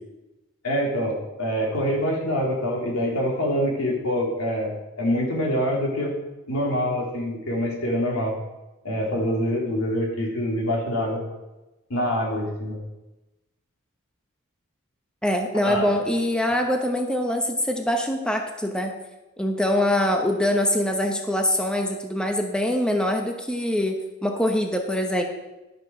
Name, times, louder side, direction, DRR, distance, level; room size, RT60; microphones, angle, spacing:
voice 1, 0.6-6.1 6.5-8.3 8.8-11.2 11.9-12.8 15.6-15.9, equal, 85° left, -2 dB, 3.0 m, -25 dB
voice 2, 15.2-18.9 19.4-25.2, left 1 dB, 5° left, 3 dB, 0.8 m, -24 dB
11.5 x 6.0 x 6.2 m, 1.0 s
head